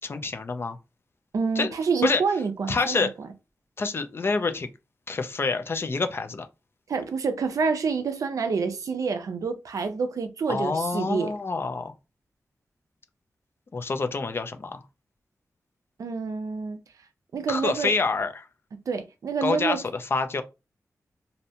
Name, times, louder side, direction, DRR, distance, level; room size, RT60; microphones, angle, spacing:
voice 1, 0.0-0.8 1.6-1.7 2.0-2.2 2.7-3.1 3.8-4.7 5.1-6.5 10.5-11.9 13.7-14.8 17.5-18.5 19.4-20.4, left 4 dB, 40° left, 0.4 m, -27 dB
voice 2, 1.3-3.1 6.9-11.3 16.0-16.8 17.3-17.9 18.7-19.8, right 5 dB, 70° right, 0.4 m, -27 dB
2.6 x 2.1 x 2.7 m
wide cardioid pair, 115°, 6 cm